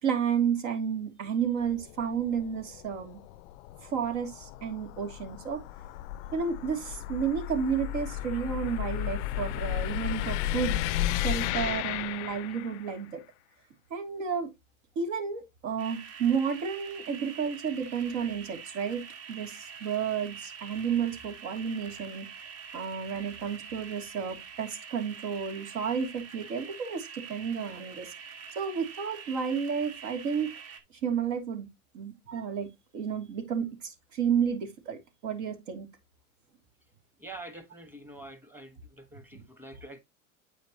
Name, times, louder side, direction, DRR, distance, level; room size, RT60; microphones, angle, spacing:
voice 1, 0.0-3.2 3.8-5.6 6.3-10.8 11.1-13.2 13.9-14.5 14.9-22.3 22.7-28.1 28.5-30.5 31.0-31.7 31.9-32.7 32.9-35.9 39.3-39.4, right 7 dB, 65° right, 3.0 m, -31 dB
sound 1, 1.6-13.0, left 14 dB, 55° left, 0.5 m, -34 dB
sound 2, 15.8-30.8, right 6 dB, 35° right, 1.8 m, -45 dB
voice 2, 37.2-40.0, right 2 dB, 5° right, 1.4 m, -46 dB
8.8 x 5.1 x 3.0 m
supercardioid pair, 120°, 42 cm